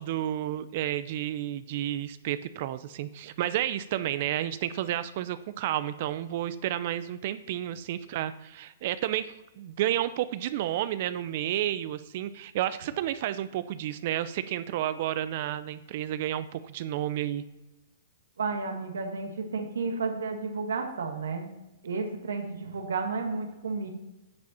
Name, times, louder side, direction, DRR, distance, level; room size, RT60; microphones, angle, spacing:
voice 1, 0.0-17.4, right 12 dB, 55° right, 13 dB, 0.5 m, -31 dB
voice 2, 18.4-21.5 21.8-23.9, right 4 dB, 85° right, 3 dB, 1.8 m, -32 dB
9.6 x 7.4 x 4.2 m, 1.0 s
hypercardioid pair, 130°, 0 cm